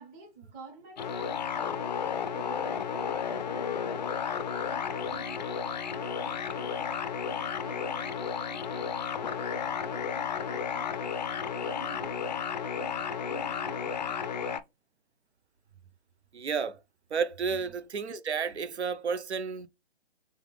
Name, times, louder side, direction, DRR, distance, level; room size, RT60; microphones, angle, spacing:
voice 1, 0.0-3.9 4.3-4.4 4.7-6.9 7.2-11.0 11.4-14.6 17.5-17.8, right 4 dB, 10° right, 0.6 m, -50 dB
sound 1, 1.0-14.6, left 7 dB, 40° left, 0.4 m, -33 dB
voice 2, 16.3-16.8 17.1-19.7, right 6 dB, 80° right, 0.7 m, -31 dB
3.8 x 3.5 x 3.3 m
hypercardioid pair, 145°, 33 cm